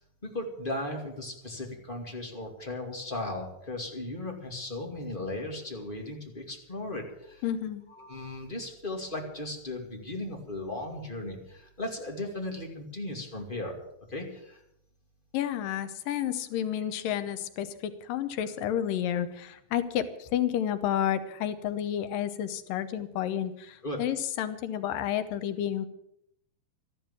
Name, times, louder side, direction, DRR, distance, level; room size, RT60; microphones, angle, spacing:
voice 1, 0.2-7.5 7.9-13.7 14.1-14.6 16.7-16.8 23.8-24.0, left 2 dB, 15° left, 1 dB, 2.1 m, -36 dB
voice 2, 7.4-7.8 15.3-25.9, left 10 dB, 85° left, 11 dB, 2.7 m, -30 dB
13.5 x 12.0 x 7.2 m, 0.76 s
omnidirectional pair, 3.9 m